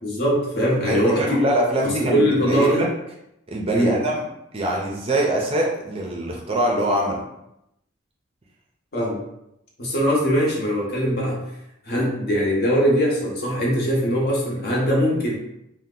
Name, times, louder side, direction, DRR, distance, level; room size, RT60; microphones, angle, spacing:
voice 1, 0.0-1.4 1.8-2.9 3.7-4.0 8.9-9.2 9.8-11.4 11.8-15.4, equal, 50° left, -4 dB, 0.9 m, -21 dB
voice 2, 0.9-2.9 3.5-4.2 4.5-7.2, right 1 dB, 30° right, -1 dB, 0.5 m, -23 dB
2.8 x 2.1 x 3.7 m, 0.84 s
head